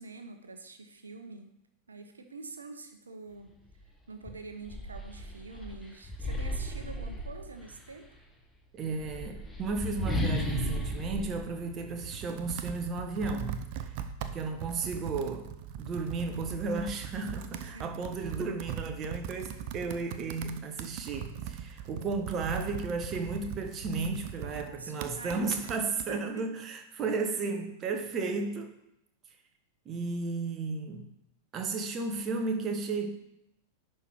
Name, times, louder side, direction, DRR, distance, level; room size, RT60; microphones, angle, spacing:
voice 1, 0.0-1.5 1.9-3.5 4.1-8.1 17.5-17.9 24.4-26.6 27.0-27.2, right 3 dB, 75° right, 7 dB, 1.0 m, -46 dB
sound 1, 3.7-3.8 4.2-7.9 8.8-12.4, equal, 10° left, 1.3 m, -35 dB
voice 2, 8.7-13.9 14.2-15.5 15.8-28.7 29.8-31.1 31.5-33.1, right 4 dB, 30° right, 5 dB, 1.3 m, -34 dB
Computer keyboard, 11.5-26.1, right 8 dB, 45° right, 0.6 m, -40 dB
10.5 x 4.5 x 4.9 m, 0.80 s
figure-of-eight pair, 90°, 0 cm